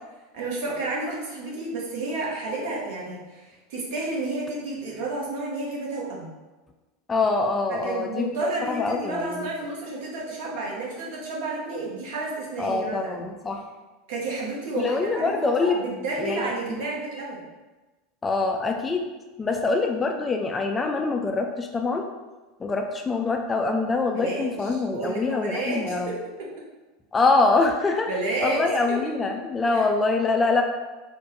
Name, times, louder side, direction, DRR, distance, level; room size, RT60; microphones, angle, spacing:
voice 1, 0.3-6.3 7.7-13.2 14.1-17.4 24.1-26.5 28.1-28.6 29.7-29.8, right 2 dB, 60° right, -4 dB, 0.9 m, -31 dB
voice 2, 7.1-9.5 12.6-13.6 14.7-15.8 16.2-16.8 18.2-19.1 19.4-22.1 22.6-26.1 27.1-28.1 28.4-30.6, left 3 dB, 20° left, 3 dB, 0.3 m, -24 dB
3.5 x 2.1 x 2.9 m, 1.2 s
figure-of-eight pair, 80°, 0 cm